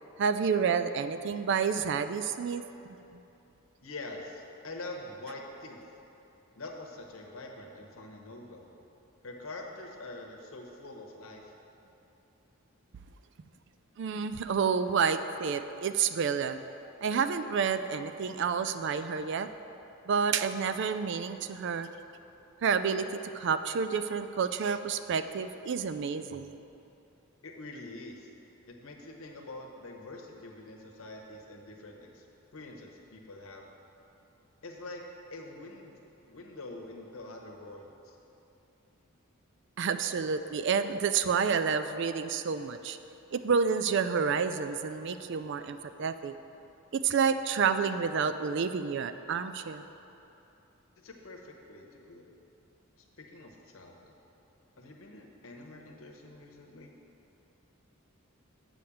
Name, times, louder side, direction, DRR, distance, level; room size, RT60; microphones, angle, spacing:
voice 1, 0.2-2.6 3.1-3.2 14.0-16.6 17.0-19.5 20.1-21.9 22.6-26.6 39.8-43.0 43.3-46.3 46.9-49.8, right 6 dB, 55° right, 11 dB, 0.4 m, -29 dB
voice 2, 3.8-5.9 6.5-8.7 9.2-11.5 27.4-28.3 28.7-32.3 32.5-33.6 34.6-35.0 35.3-35.9 36.2-38.2 51.0-52.3 53.2-54.2 54.8-56.9, left 2 dB, 80° left, 1 dB, 1.1 m, -45 dB
7.7 x 5.1 x 7.1 m, 2.9 s
head